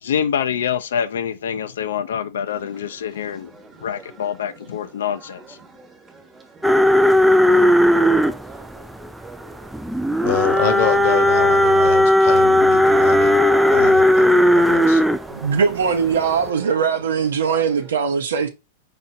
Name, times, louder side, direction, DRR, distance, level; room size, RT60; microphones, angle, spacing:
voice 1, 0.0-3.5 3.8-5.6, left 8 dB, 80° left, 0.5 m, -25 dB
sound 1, 2.5-17.9, right 3 dB, 20° right, 1.2 m, -42 dB
sound 2, 6.6-15.2 15.7-16.1 16.4-16.5, left 1 dB, ahead, 0.3 m, -15 dB
voice 2, 10.2-13.4 13.7-15.0, left 8 dB, 65° left, 1.0 m, -26 dB
voice 3, 15.3-18.5, right 6 dB, 85° right, 0.7 m, -20 dB
4.3 x 4.2 x 2.6 m
hypercardioid pair, 115°, 0 cm